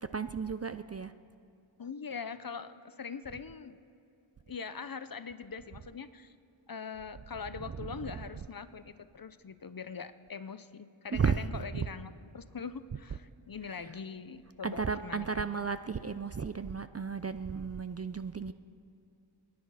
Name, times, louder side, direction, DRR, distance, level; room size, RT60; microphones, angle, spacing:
voice 1, 0.0-1.1 7.7-8.2 11.1-11.9 13.7-14.0 14.6-18.5, right 5 dB, 35° right, 11 dB, 0.4 m, -34 dB
voice 2, 1.8-3.8 4.5-6.3 6.7-15.5, left 5 dB, 45° left, 12 dB, 0.6 m, -42 dB
26.0 x 10.5 x 4.8 m, 2.6 s
wide cardioid pair, 55°, 49 cm